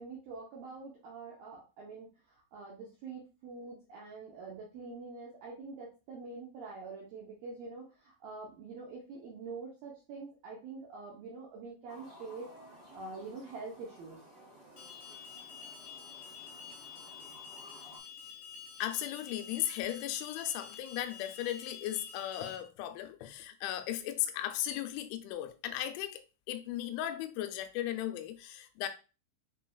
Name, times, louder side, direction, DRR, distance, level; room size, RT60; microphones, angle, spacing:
voice 1, 0.0-14.2, right 4 dB, 80° right, 2.1 m, -45 dB
sound 1, 11.9-18.0, equal, 20° right, 1.1 m, -55 dB
Alarm, 14.8-22.6, left 7 dB, 65° left, 2.2 m, -48 dB
voice 2, 18.8-28.9, left 12 dB, 85° left, 3.0 m, -36 dB
7.1 x 3.2 x 2.3 m
omnidirectional pair, 5.4 m